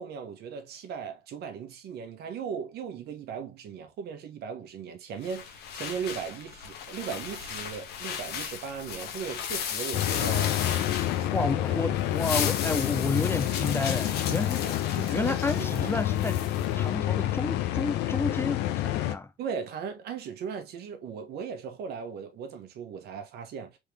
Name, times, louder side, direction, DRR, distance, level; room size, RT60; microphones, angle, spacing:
voice 1, 0.0-10.8 11.2-11.5 11.9-12.2 14.6-16.0 19.4-23.8, right 6 dB, 70° right, 1.3 m, -38 dB
sound 1, 5.2-11.6 12.0-16.7, left 8 dB, 70° left, 1.0 m, -36 dB
sound 2, 9.9-19.1, left 13 dB, 85° left, 0.6 m, -28 dB
voice 2, 11.3-14.6 15.1-16.4 16.7-19.3, left 3 dB, 15° left, 0.4 m, -31 dB
3.7 x 3.5 x 3.3 m
cardioid pair, 110°, 17 cm